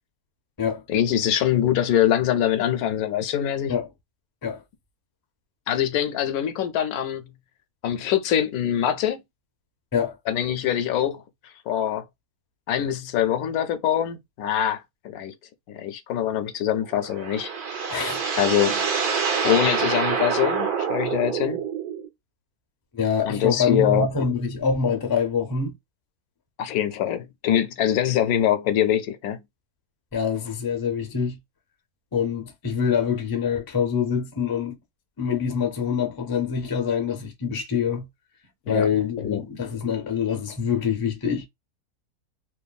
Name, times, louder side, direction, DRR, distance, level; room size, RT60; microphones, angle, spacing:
voice 1, 0.9-3.7 5.7-7.3 7.8-9.2 10.3-12.0 12.7-15.3 15.7-17.5 18.4-18.8 19.4-21.6 23.2-24.1 26.6-29.4 38.7-38.9 39.2-39.4, left 10 dB, 75° left, 1.0 m, -24 dB
sound 1, 16.9-22.1, right 6 dB, 75° right, 1.4 m, -26 dB
voice 2, 17.9-18.2 22.9-25.7 30.1-31.4 32.1-34.8 35.2-38.1 38.7-41.5, left 6 dB, 35° left, 0.3 m, -25 dB
3.1 x 2.3 x 2.3 m
omnidirectional pair, 1.6 m